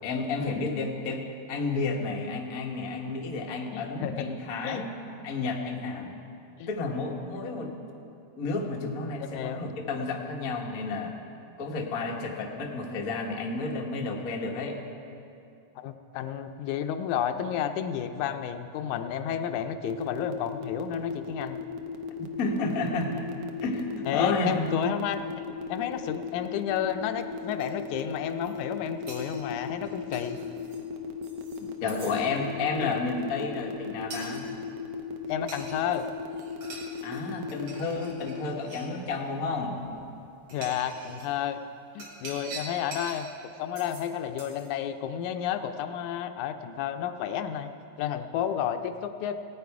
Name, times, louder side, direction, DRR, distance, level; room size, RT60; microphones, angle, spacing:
voice 1, 0.0-6.1 6.7-7.7 8.4-11.2 11.6-14.8 22.2-23.1 23.6-24.7 31.8-34.4 37.0-39.8, left 3 dB, 55° left, 0 dB, 1.0 m, -31 dB
voice 2, 3.7-4.3 4.6-4.8 6.6-6.7 9.3-9.6 15.8-21.6 24.1-25.2 25.7-30.4 35.3-36.1 40.5-41.6 42.0-43.3 43.6-47.7 48.0-49.4, left 9 dB, 85° left, 8 dB, 2.0 m, -31 dB
sound 1, 19.9-38.3, left 4 dB, 85° right, 2.2 m, -36 dB
sound 2, 27.6-27.7 28.3-28.6 29.1-30.8 31.2-31.6 31.9-32.2 34.1-34.4 35.5-36.0 36.3-37.2 37.5-38.9 39.8-39.9 40.5-41.3 42.0-43.2 43.8-44.1 44.4-44.7, right 3 dB, 65° right, 2.8 m, -44 dB
17.5 x 9.2 x 4.7 m, 2.6 s
omnidirectional pair, 3.4 m